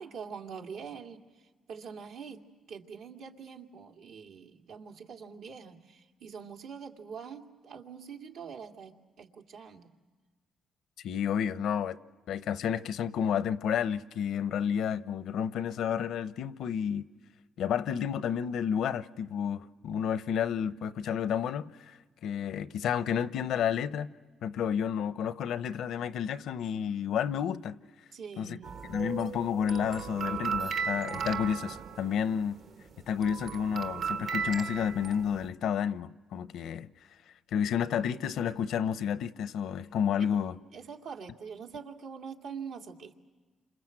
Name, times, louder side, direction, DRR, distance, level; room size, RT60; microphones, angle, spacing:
voice 1, 0.0-9.9 28.1-28.8 40.2-40.4 40.7-43.1, right 6 dB, 80° right, 2.4 m, -44 dB
voice 2, 11.0-12.0 12.3-17.0 17.6-24.1 24.4-27.8 28.4-28.6 28.9-32.6 33.1-36.9 37.5-40.6, left 8 dB, 75° left, 0.7 m, -31 dB
sound 1, 28.6-32.7 33.0-35.5, right 6 dB, 65° right, 1.4 m, -35 dB
28.5 x 26.5 x 7.6 m
cardioid pair, 90°, 0 cm